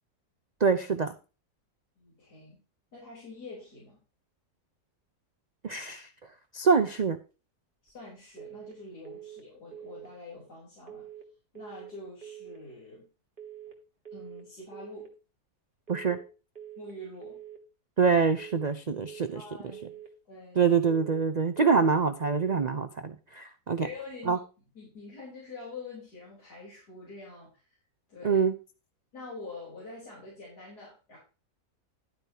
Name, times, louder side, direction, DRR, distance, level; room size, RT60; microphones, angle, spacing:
voice 1, 0.6-1.1 5.6-6.1 6.5-7.2 15.9-16.2 18.0-19.4 20.6-23.9 24.3-24.4 28.2-28.5, right 5 dB, 75° right, 9 dB, 0.4 m, -25 dB
voice 2, 2.0-2.6 2.9-4.0 7.8-11.1 11.5-13.1 14.1-15.1 16.8-17.4 19.3-20.0 20.3-20.6 23.8-24.4 24.7-27.8 28.1-28.4 29.1-31.2, left 3 dB, 80° left, -6 dB, 4.5 m, -45 dB
sound 1, 8.4-8.8 9.0-9.4 9.7-10.1 10.9-11.3 11.5-11.9 12.2-12.6 13.4-13.8 14.0-14.4 14.7-15.1 15.9-16.3 16.5-16.9 17.2-17.6 18.4-18.8 19.1-19.4 19.7-20.1 20.9-21.3 21.6-22.0 22.2-22.6, right 10 dB, 35° right, 1.8 m, -45 dB
12.0 x 9.2 x 2.9 m, 0.32 s
omnidirectional pair, 1.7 m